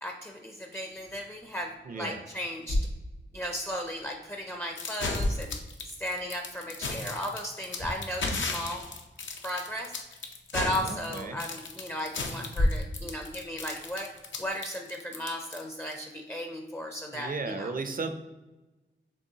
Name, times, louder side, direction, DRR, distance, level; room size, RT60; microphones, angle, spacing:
voice 1, 0.0-2.8 3.3-5.5 5.9-8.9 9.4-9.9 10.5-14.1 14.4-17.7, equal, 10° left, 2 dB, 0.4 m, -35 dB
sound 1, 0.9-14.5, left 1 dB, 65° left, 1.3 m, -37 dB
voice 2, 1.8-2.2 10.7-11.4 17.1-18.1, right 3 dB, 45° right, 8 dB, 0.5 m, -35 dB
sound 2, 4.8-16.0, left 3 dB, 80° left, 0.6 m, -35 dB
5.3 x 3.4 x 2.7 m, 1.1 s
wide cardioid pair, 95°, 19 cm